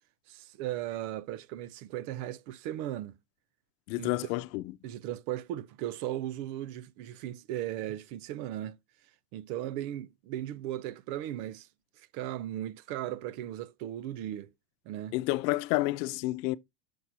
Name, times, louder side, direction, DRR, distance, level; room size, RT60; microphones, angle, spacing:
voice 1, 0.3-3.2 4.0-4.1 4.8-8.8 9.3-11.7 12.0-14.5 14.9-15.2, right 12 dB, 65° right, 0.8 m, -37 dB
voice 2, 3.9-4.6 15.1-16.6, left 19 dB, 80° left, 0.7 m, -29 dB
6.5 x 4.2 x 6.1 m
cardioid pair, 160°, 48 cm